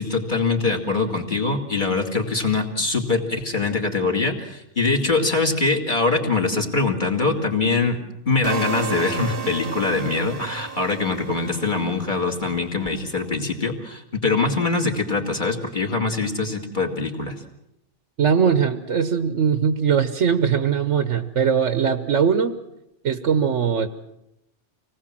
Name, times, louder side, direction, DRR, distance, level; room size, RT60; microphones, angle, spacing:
voice 1, 0.0-8.0 8.3-17.4, left 3 dB, 40° left, 1 dB, 2.7 m, -23 dB
sound 1, 8.4-12.5, right 6 dB, 50° right, 1.2 m, -32 dB
voice 2, 18.2-22.5 23.0-23.9, right 7 dB, 85° right, 10 dB, 1.4 m, -20 dB
26.0 x 19.0 x 7.5 m, 0.85 s
omnidirectional pair, 1.2 m